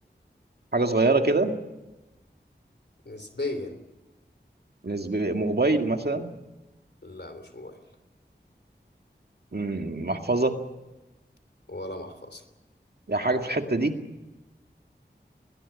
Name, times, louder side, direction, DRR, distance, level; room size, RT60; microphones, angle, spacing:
voice 1, 0.7-1.5 4.8-6.3 9.5-10.6 13.1-14.0, right 2 dB, 60° right, 5 dB, 2.0 m, -24 dB
voice 2, 3.0-3.8 7.0-7.8 11.7-12.4, left 2 dB, 65° left, 10 dB, 3.1 m, -36 dB
21.0 x 19.0 x 8.4 m, 1.1 s
wide cardioid pair, 40°, 19 cm